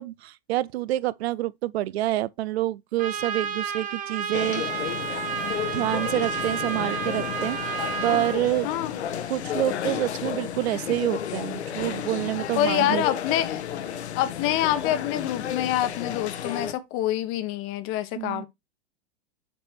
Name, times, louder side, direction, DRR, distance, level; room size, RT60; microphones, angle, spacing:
voice 1, 0.0-4.6 5.7-8.7 9.3-13.0 18.2-18.5, right 15 dB, 70° right, 0.5 m, -27 dB
Trumpet, 3.0-8.4, right 7 dB, 25° right, 1.2 m, -31 dB
sound 1, 4.3-16.7, left 9 dB, 75° left, 1.1 m, -32 dB
voice 2, 8.6-9.0 12.6-13.7 14.1-18.5, left 12 dB, 40° left, 1.0 m, -26 dB
6.9 x 3.2 x 4.4 m
hypercardioid pair, 120°, 33 cm